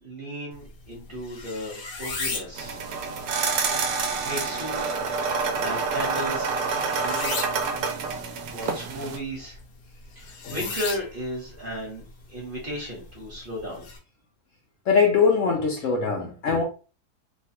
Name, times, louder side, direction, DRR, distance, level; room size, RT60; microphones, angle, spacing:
voice 1, 0.0-2.8 3.7-4.0 4.2-4.8 5.6-6.5 7.0-8.0 8.5-9.6 10.2-13.9, equal, 35° right, 1.1 m, -35 dB
sound 1, 0.5-14.0, left 3 dB, 90° left, 1.4 m, -39 dB
sound 2, 2.5-9.2, right 4 dB, 70° right, 1.0 m, -28 dB
voice 2, 14.9-16.6, left 5 dB, 65° left, 0.8 m, -22 dB
3.2 x 2.3 x 2.8 m
omnidirectional pair, 1.7 m